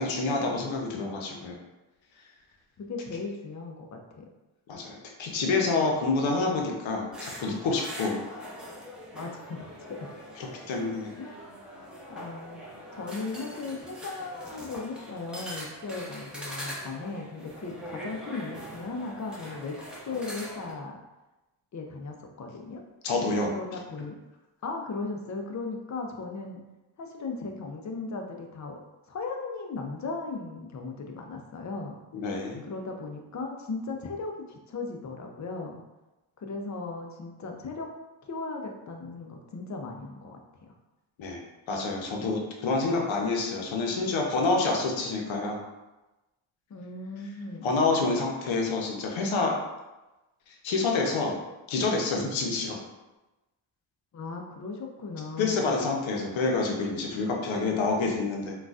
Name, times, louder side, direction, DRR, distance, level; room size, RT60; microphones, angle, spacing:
voice 1, 0.0-1.6 4.7-8.2 10.7-11.1 23.0-23.5 32.1-32.6 41.2-41.4 41.7-45.6 47.6-49.6 50.6-51.3 51.7-52.8 55.4-58.6, left 3 dB, 70° left, 0 dB, 0.8 m, -27 dB
voice 2, 2.8-4.2 9.1-10.1 11.2-11.4 12.1-12.6 12.9-21.0 21.7-22.8 23.5-24.2 24.6-26.6 27.0-28.8 29.1-32.0 32.6-35.8 36.4-37.9 38.2-40.4 46.7-47.7 54.1-55.8, left 3 dB, 35° left, 2 dB, 0.6 m, -37 dB
sound 1, 7.1-20.7, equal, ahead, 0.9 m, -42 dB
3.8 x 2.4 x 2.4 m, 1.1 s
cardioid pair, 70°, 49 cm